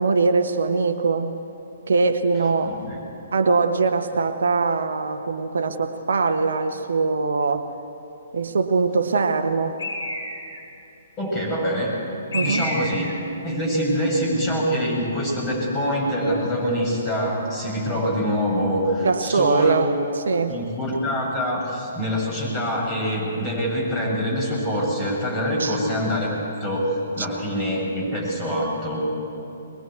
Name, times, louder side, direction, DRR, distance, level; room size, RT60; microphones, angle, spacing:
voice 1, 0.0-1.4 1.9-2.8 3.3-7.7 8.3-9.8 12.3-12.7 19.0-19.9 20.2-20.6 25.6-25.8 27.2-27.3, right 4 dB, 60° right, 8 dB, 1.1 m, -22 dB
voice 2, 2.7-3.0 11.2-11.9 12.3-13.1 13.4-19.7 20.5-29.1, equal, 20° left, -2 dB, 7.3 m, -25 dB
Bird, 9.8-10.6 12.3-13.2, left 2 dB, 60° left, 6.0 m, -29 dB
22.0 x 21.5 x 8.4 m, 2.8 s
figure-of-eight pair, 125°, 0 cm